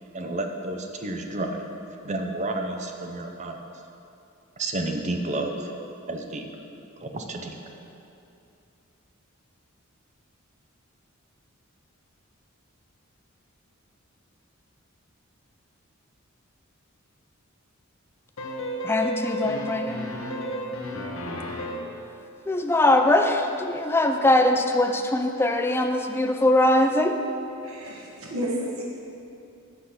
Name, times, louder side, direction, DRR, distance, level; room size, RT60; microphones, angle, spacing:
voice 1, 0.1-1.6 2.0-3.6 4.6-5.7 6.1-6.5 7.0-7.5, right 2 dB, 35° right, 4 dB, 0.6 m, -30 dB
sound 1, 18.4-22.0, equal, 75° left, 1.0 m, -32 dB
voice 2, 18.8-20.0 22.5-27.2, left 1 dB, 10° left, 4 dB, 0.4 m, -21 dB
voice 3, 27.6-28.8, equal, 85° right, -3 dB, 1.2 m, -31 dB
7.9 x 4.9 x 5.8 m, 2.7 s
head